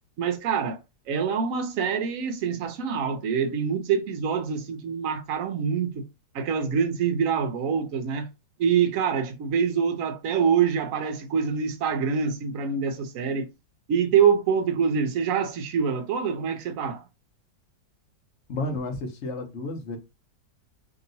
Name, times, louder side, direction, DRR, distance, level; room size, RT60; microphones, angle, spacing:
voice 1, 0.2-0.8 1.1-6.0 6.3-8.3 8.6-13.5 13.9-17.0, right 6 dB, 65° right, 0.8 m, -25 dB
voice 2, 18.5-20.0, left 2 dB, 55° left, 0.9 m, -31 dB
2.9 x 2.9 x 2.6 m
omnidirectional pair, 1.9 m